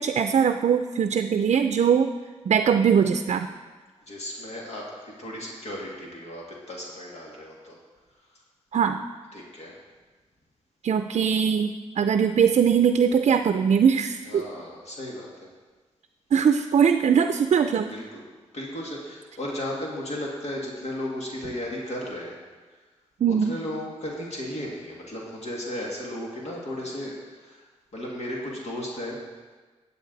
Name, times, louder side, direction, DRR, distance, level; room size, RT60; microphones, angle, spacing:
voice 1, 0.0-2.1 2.5-3.5 8.7-9.0 10.8-14.5 16.3-17.9 23.2-23.6, right 7 dB, 65° right, 8 dB, 0.5 m, -21 dB
voice 2, 4.1-7.8 9.3-9.7 14.3-15.3 17.9-18.2 18.5-22.4 23.5-27.6 27.9-29.2, left 1 dB, 65° left, -3 dB, 2.2 m, -35 dB
12.5 x 8.3 x 4.0 m, 1.4 s
cardioid pair, 70°, 12 cm